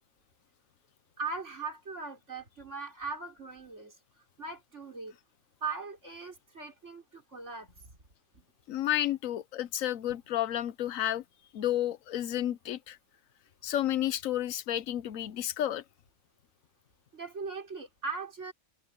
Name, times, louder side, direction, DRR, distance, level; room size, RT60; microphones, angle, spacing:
voice 1, 1.2-4.0 4.4-5.1 5.6-8.0 8.3-8.5 17.1-18.5, right 4 dB, 60° right, 4.6 m, -39 dB
voice 2, 8.7-11.2 11.5-13.0 13.6-15.8, left 12 dB, 85° left, 1.1 m, -31 dB
omnidirectional pair, 1.4 m